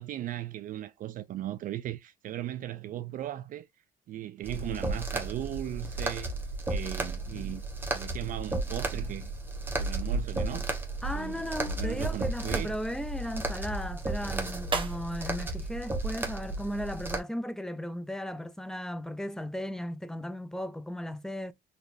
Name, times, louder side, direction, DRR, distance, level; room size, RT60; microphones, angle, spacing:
voice 1, 0.0-3.7 4.1-6.4 6.7-7.6 7.9-9.3 9.8-10.7 11.1-12.8, right 13 dB, 55° right, 0.4 m, -37 dB
sound 1, 4.4-17.2, right 2 dB, 10° right, 1.1 m, -33 dB
voice 2, 11.0-21.5, equal, 5° left, 0.5 m, -36 dB
sound 2, 14.6-17.0, right 5 dB, 30° right, 1.0 m, -42 dB
4.2 x 3.0 x 2.6 m
cardioid pair, 110°, 17 cm